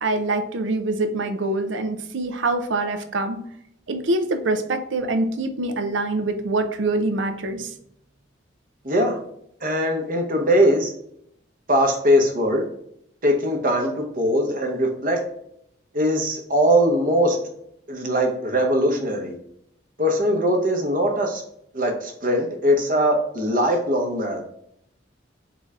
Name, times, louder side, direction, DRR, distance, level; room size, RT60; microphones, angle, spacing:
voice 1, 0.0-3.4 3.9-7.7, right 2 dB, 80° right, 8 dB, 0.6 m, -24 dB
voice 2, 8.8-9.2 9.6-10.9 11.7-12.6 13.2-15.2 15.9-17.4 17.9-19.4 20.0-21.4 21.7-24.4, equal, 45° right, 2 dB, 0.8 m, -21 dB
3.9 x 3.3 x 3.6 m, 0.72 s
head